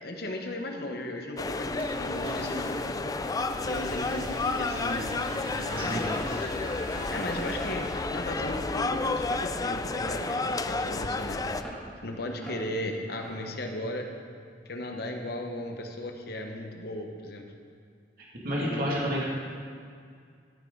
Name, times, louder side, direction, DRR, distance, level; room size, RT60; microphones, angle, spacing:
voice 1, 0.0-2.8 3.3-5.1 5.5-6.5 7.1-11.4 12.0-14.1 14.6-17.5 18.5-18.8, left 1 dB, 65° left, 3 dB, 1.2 m, -36 dB
sound 1, 1.4-11.6, left 3 dB, 20° left, 0.4 m, -31 dB
sound 2, 1.7-9.6, equal, 30° right, 2.1 m, -41 dB
voice 2, 5.8-6.1 18.4-19.3, equal, 60° right, -5 dB, 2.4 m, -29 dB
sound 3, 6.0-6.2 6.8-7.0 7.6-7.8 8.5-8.7 9.2-9.6 10.0-10.2 10.8-11.0 11.6-11.8 12.4-12.6 13.2-13.4, equal, 5° left, 2.8 m, -42 dB
14.0 x 9.1 x 4.0 m, 2.2 s
head